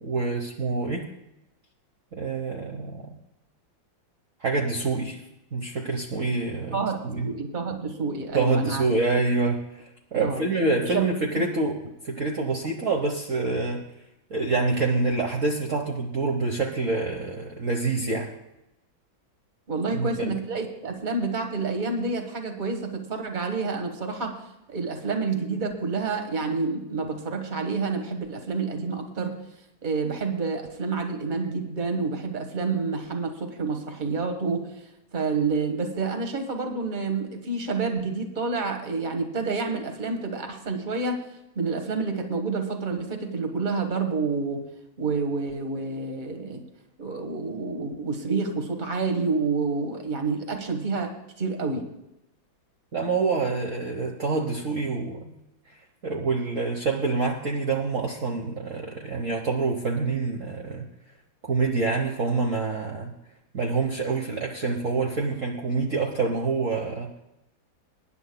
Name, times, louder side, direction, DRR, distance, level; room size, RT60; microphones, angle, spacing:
voice 1, 0.0-1.0 2.1-3.1 4.4-5.2 5.5-7.3 8.3-11.7 12.0-13.9 14.3-18.3 19.9-20.4 52.9-55.4 55.7-60.9 61.4-63.1 63.5-67.1, right 3 dB, 45° right, 1 dB, 1.3 m, -26 dB
voice 2, 6.7-8.8 10.1-10.4 10.8-11.1 11.3-11.4 19.7-24.4 24.7-29.3 29.8-34.7 35.1-41.2 41.5-44.7 45.0-46.6 47.0-51.9, right 4 dB, 25° right, 5 dB, 1.5 m, -28 dB
23.5 x 10.5 x 2.3 m, 0.88 s
omnidirectional pair, 2.2 m